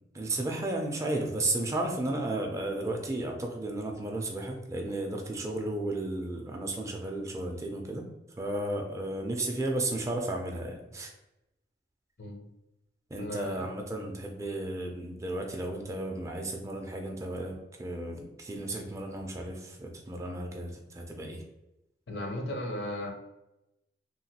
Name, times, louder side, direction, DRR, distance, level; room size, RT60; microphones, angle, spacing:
voice 1, 0.1-8.1 8.4-11.1 13.1-21.4, right 2 dB, 15° right, 2 dB, 0.3 m, -34 dB
voice 2, 13.2-13.7 22.1-23.1, left 1 dB, 70° left, 2 dB, 0.6 m, -35 dB
3.0 x 2.2 x 2.8 m, 0.91 s
head